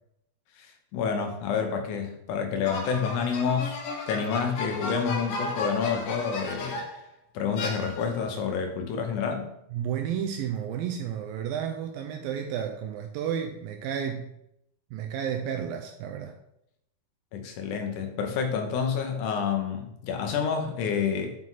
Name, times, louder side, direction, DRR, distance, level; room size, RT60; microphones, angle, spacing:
voice 1, 0.6-3.8 4.1-6.8 7.3-9.5 17.3-21.4, left 6 dB, 75° left, 4 dB, 1.9 m, -29 dB
sound 1, 2.6-7.0 7.6-8.3, left 3 dB, 90° left, 1.3 m, -34 dB
voice 2, 9.7-14.3 14.9-16.4, right 8 dB, 80° right, 4 dB, 2.2 m, -32 dB
7.6 x 6.0 x 4.0 m, 0.78 s
omnidirectional pair, 4.5 m